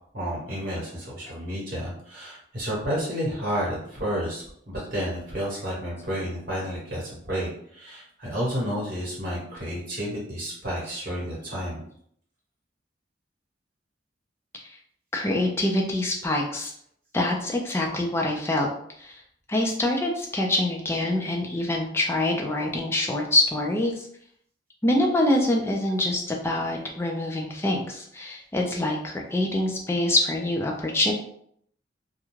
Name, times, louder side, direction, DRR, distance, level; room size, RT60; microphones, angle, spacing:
voice 1, 0.1-11.8, equal, 50° right, -5 dB, 1.1 m, -31 dB
voice 2, 15.1-16.7 17.1-18.7 19.0-19.2 19.5-24.1 24.8-31.1, left 1 dB, 15° left, 0 dB, 0.4 m, -25 dB
2.4 x 2.2 x 3.0 m, 0.67 s
head